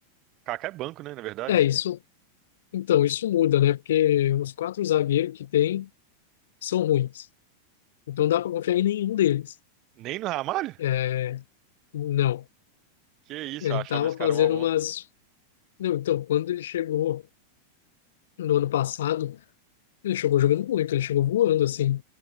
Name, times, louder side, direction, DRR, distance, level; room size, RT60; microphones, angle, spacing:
voice 1, 0.5-1.6 10.0-10.8 13.3-14.6, right 17 dB, 40° right, 3.7 m, -33 dB
voice 2, 1.5-2.0 2.7-5.9 6.6-7.3 8.1-9.5 10.8-11.4 11.9-12.4 13.6-15.0 15.8-17.2 18.4-19.4 20.0-22.0, left 12 dB, 80° left, 2.0 m, -24 dB
hypercardioid pair, 125°, 0 cm